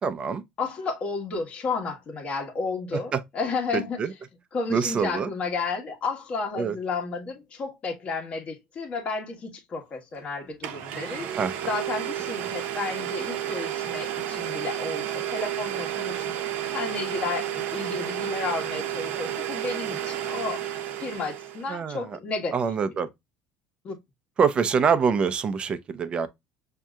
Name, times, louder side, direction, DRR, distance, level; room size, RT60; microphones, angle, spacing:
voice 1, 0.0-0.4 2.9-3.2 3.7-4.1 4.7-5.3 6.6-6.8 11.4-11.5 21.7-22.2 22.5-23.1 24.4-26.3, right 6 dB, 30° right, 0.6 m, -25 dB
voice 2, 0.6-4.0 4.5-11.4 11.6-16.3 16.7-20.7 21.0-22.6 23.8-24.0, left 4 dB, 40° left, 1.3 m, -32 dB
Domestic sounds home sounds, 10.2-10.3 10.6-21.7, right 11 dB, 65° right, 0.8 m, -31 dB
6.0 x 2.8 x 2.3 m
supercardioid pair, 110°, 3 cm